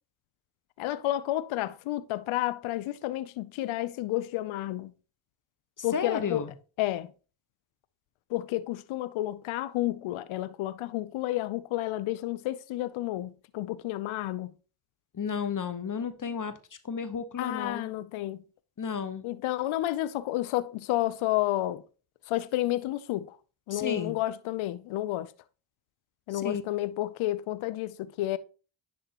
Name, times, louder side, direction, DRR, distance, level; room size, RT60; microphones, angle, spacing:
voice 1, 0.8-4.9 5.8-6.5 6.8-7.1 8.3-14.5 17.4-18.4 19.2-21.8 22.3-23.4 23.7-25.3 26.3-28.4, left 15 dB, 75° left, 0.6 m, -31 dB
voice 2, 5.8-6.5 15.1-16.6 16.8-17.9 18.8-19.2 23.7-24.2 26.3-26.6, left 6 dB, 40° left, 1.0 m, -33 dB
10.0 x 3.5 x 2.9 m
supercardioid pair, 40°, 49 cm